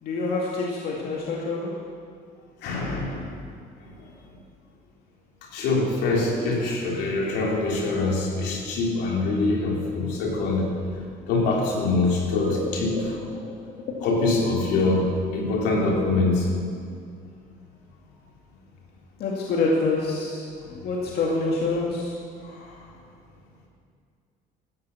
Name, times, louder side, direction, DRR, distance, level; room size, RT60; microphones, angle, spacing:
voice 1, 0.0-1.7 12.9-13.0 13.4-13.6 13.9-14.1 14.6-14.7 19.2-22.9, left 3 dB, 70° left, -3 dB, 2.2 m, -27 dB
voice 2, 2.6-3.3 4.0-4.1 5.4-10.7 11.3-12.9 14.0-16.5, left 3 dB, 90° left, -2 dB, 3.2 m, -24 dB
13.5 x 11.0 x 7.1 m, 2.2 s
cardioid pair, 110°, 17 cm